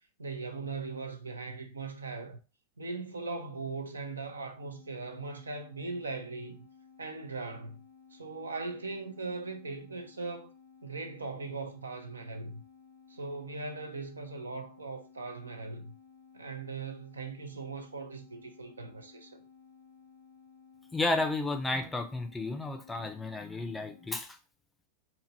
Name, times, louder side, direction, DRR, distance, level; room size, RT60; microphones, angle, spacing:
voice 1, 0.2-2.4 2.8-6.7 7.0-7.8 8.1-10.5 10.8-12.6 13.1-16.0 16.3-19.4, right 3 dB, 75° right, 0.5 m, -39 dB
sound 1, 4.5-24.1, left 6 dB, 90° left, 0.9 m, -57 dB
voice 2, 20.9-24.4, left 2 dB, 10° left, 0.5 m, -32 dB
2.8 x 2.5 x 2.9 m
figure-of-eight pair, 90°, 0 cm